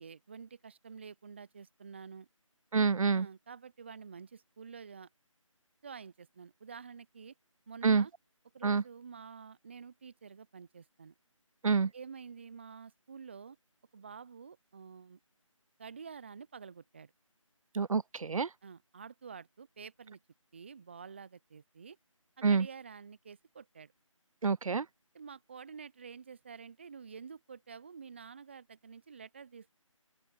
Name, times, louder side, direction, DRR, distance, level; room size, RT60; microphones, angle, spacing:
voice 1, 0.0-2.3 3.1-5.1 5.8-7.3 7.7-8.1 8.5-11.1 11.9-13.6 13.9-15.2 15.8-17.1 18.6-20.2 20.5-22.0 22.4-23.9 25.1-29.8, right 6 dB, 20° right, 0.5 m, -49 dB
voice 2, 2.7-3.3 7.8-8.1 8.6-8.8 11.6-11.9 17.7-18.5 22.4-22.7 24.4-24.9, right 5 dB, 80° right, 0.5 m, -27 dB
open air
figure-of-eight pair, 160°, 17 cm